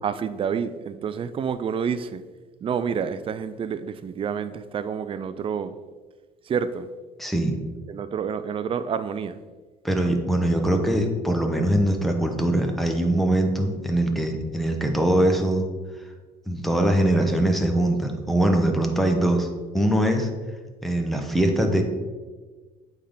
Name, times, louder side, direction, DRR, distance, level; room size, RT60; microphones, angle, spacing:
voice 1, 0.0-2.2 2.6-5.8 6.5-6.9 7.9-9.4, right 7 dB, 30° right, 0.4 m, -28 dB
voice 2, 7.2-7.6 9.8-15.6 16.5-19.5 19.7-20.3 20.8-21.8, right 1 dB, ahead, 0.9 m, -22 dB
8.4 x 3.5 x 3.8 m
cardioid pair, 110°, 17 cm